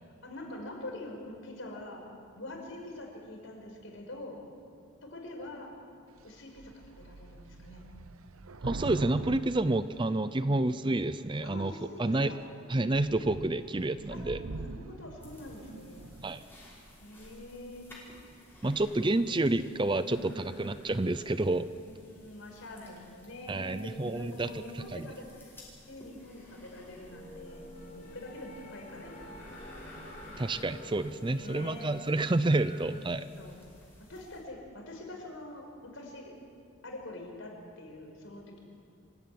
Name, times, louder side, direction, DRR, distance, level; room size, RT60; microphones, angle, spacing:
voice 1, 0.2-2.0 2.4-4.4 5.0-5.7 6.2-7.8 10.4-10.6 11.4-12.4 13.0-13.6 14.1-14.2 14.5-16.1 17.0-17.9 18.6-19.5 20.0-20.5 21.7-25.6 25.9-29.3 30.3-30.6 31.3-31.9 32.9-33.5 34.1-36.4 36.8-38.6, left 1 dB, 65° left, 1 dB, 5.4 m, -45 dB
Thunder / Rain, 6.2-6.3 6.6-10.7 11.4-11.9 12.3-12.4 12.7-16.5, right 2 dB, 85° right, 0.9 m, -43 dB
voice 2, 8.6-11.7 12.0-12.3 12.7-14.4 16.2-16.4 18.6-21.7 23.5-24.6 24.9-25.1 30.4-33.3, right 2 dB, 20° right, 13 dB, 0.5 m, -29 dB
sound 1, 15.2-34.4, left 1 dB, 10° left, 5.7 m, -54 dB
sound 2, 26.7-33.0, equal, 40° left, 2.5 m, -49 dB
26.0 x 16.0 x 9.5 m, 2.3 s
head